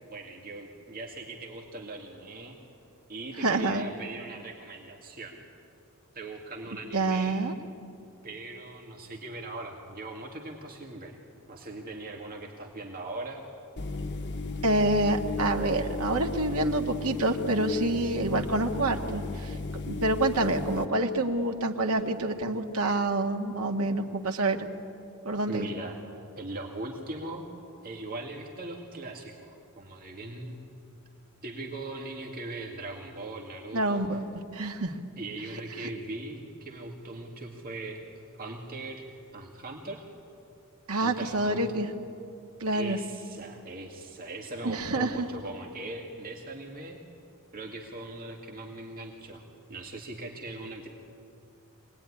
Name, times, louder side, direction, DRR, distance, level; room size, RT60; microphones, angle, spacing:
voice 1, 0.1-2.6 3.1-5.4 6.1-7.5 8.2-11.2 11.5-13.4 25.5-26.0 26.4-27.5 27.8-30.7 31.4-34.0 35.2-39.0 39.3-40.0 41.0-41.6 42.7-47.0 47.5-49.4 49.7-50.9, right 2 dB, 40° right, 0 dB, 2.1 m, -40 dB
voice 2, 3.4-3.9 6.9-7.5 14.6-24.7 25.3-25.7 33.7-34.9 40.9-41.9 42.6-43.0 44.6-45.3, right 2 dB, 80° right, 4 dB, 1.7 m, -27 dB
sound 1, 13.8-20.9, left 3 dB, 55° left, 1.1 m, -35 dB
25.0 x 19.5 x 9.9 m, 2.6 s
head